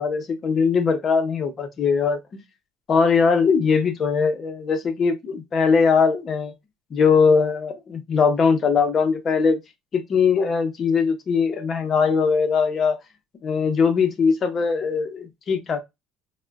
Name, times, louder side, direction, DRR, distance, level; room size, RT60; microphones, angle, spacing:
voice 1, 0.0-2.4 2.9-6.5 6.9-9.6 9.9-13.0 13.4-15.8, left 5 dB, 35° left, 0.6 m, -20 dB
3.5 x 2.1 x 2.2 m
cardioid pair, 130°, 0 cm